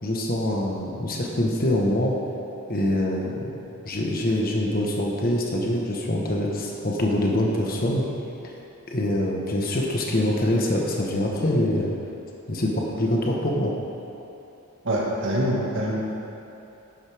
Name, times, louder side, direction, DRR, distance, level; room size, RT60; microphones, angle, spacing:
voice 1, 0.0-2.1 2.7-3.6 3.8-8.0 8.9-11.9 12.5-13.7, left 1 dB, 40° left, -1 dB, 1.3 m, -24 dB
voice 2, 14.8-16.0, right 1 dB, 55° right, -4 dB, 1.9 m, -24 dB
11.0 x 10.5 x 3.6 m, 2.9 s
head